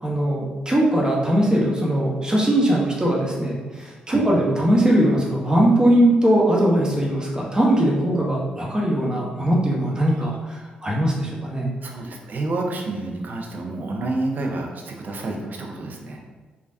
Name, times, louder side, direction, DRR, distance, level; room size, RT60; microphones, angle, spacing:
voice 1, 0.0-11.7, right 1 dB, 20° right, -3 dB, 0.9 m, -20 dB
voice 2, 11.8-16.2, right 2 dB, 50° right, 1 dB, 0.5 m, -29 dB
3.2 x 2.2 x 2.6 m, 1.3 s
hypercardioid pair, 40°, 4 cm